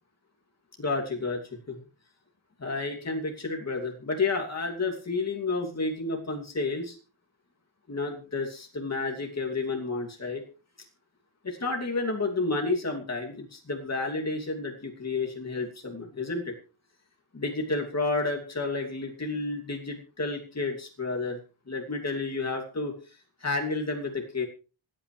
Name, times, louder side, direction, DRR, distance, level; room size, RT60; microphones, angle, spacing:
voice 1, 0.8-1.4 1.7-1.8 2.6-7.0 7.9-10.4 11.4-16.5 17.3-21.4 21.7-22.9 23.4-24.4, left 3 dB, 35° left, 1 dB, 2.8 m, -31 dB
26.5 x 8.9 x 3.4 m, 0.34 s
wide cardioid pair, 165°, 47 cm